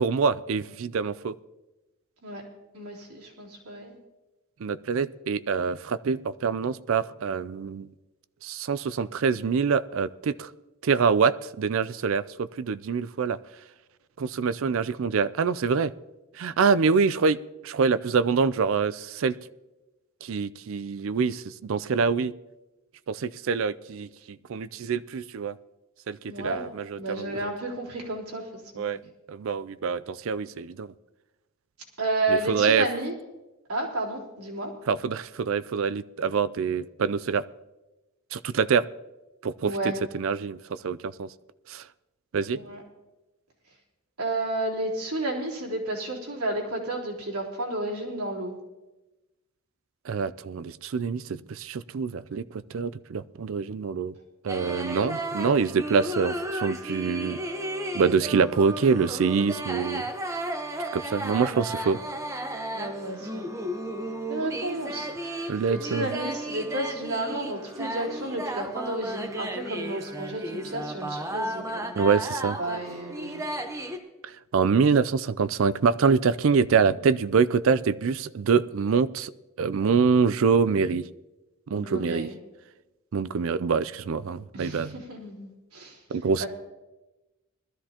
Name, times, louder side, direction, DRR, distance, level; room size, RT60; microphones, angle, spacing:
voice 1, 0.0-1.4 4.6-7.9 8.4-10.5 10.8-13.4 14.2-15.9 16.4-19.4 20.2-22.3 23.1-25.5 26.1-27.5 28.8-29.0 29.3-30.9 32.3-32.9 34.9-37.4 38.3-38.9 39.4-41.3 41.7-41.8 42.3-42.6 50.1-54.1 54.4-57.4 57.9-60.1 60.9-62.0 65.5-66.1 72.0-72.6 74.2-79.3 79.6-81.1 81.7-82.3 83.1-85.0 86.1-86.5, right 5 dB, 60° right, 16 dB, 0.4 m, -25 dB
voice 2, 2.7-3.9 26.3-26.6 27.0-29.0 32.0-33.1 33.7-34.7 39.6-40.0 42.5-42.8 44.2-48.6 62.7-63.5 64.3-65.1 65.4-72.0 72.6-73.6 81.7-82.4 84.5-86.0 86.4-86.5, right 2 dB, 90° right, -3 dB, 3.5 m, -32 dB
sound 1, 54.5-74.0, right 1 dB, 15° right, 0.9 m, -34 dB
20.5 x 13.0 x 2.9 m, 1.1 s
head